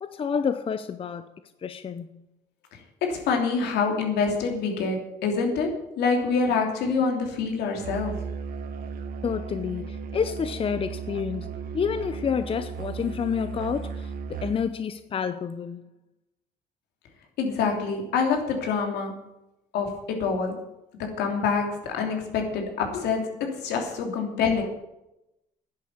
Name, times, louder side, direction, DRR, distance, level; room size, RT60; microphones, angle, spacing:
voice 1, 0.0-1.3 1.6-2.2 9.2-11.5 11.7-15.9, left 7 dB, 35° left, 0.7 m, -29 dB
voice 2, 3.0-8.3 17.4-19.2 19.7-20.6 21.2-24.7, left 5 dB, 80° left, 3.1 m, -26 dB
Musical instrument, 7.8-14.7, right 5 dB, 60° right, 1.5 m, -35 dB
10.5 x 8.3 x 9.5 m
cardioid pair, 110°, 17 cm